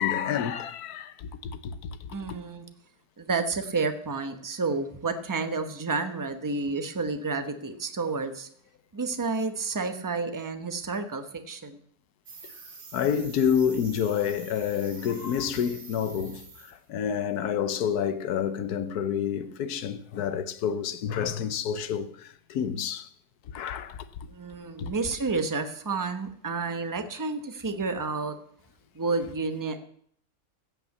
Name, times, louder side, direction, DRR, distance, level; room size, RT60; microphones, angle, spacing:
voice 1, 0.0-2.4 12.9-23.1 23.5-24.1 24.8-24.9, left 8 dB, 80° left, 1.3 m, -29 dB
voice 2, 2.1-2.6 3.2-8.5 8.9-11.8 24.3-28.4 28.9-29.8, right 4 dB, 15° right, 0.7 m, -30 dB
sound 1, 12.3-16.8 17.1-17.4, right 4 dB, 50° right, 1.8 m, -46 dB
15.0 x 5.9 x 8.2 m
omnidirectional pair, 1.6 m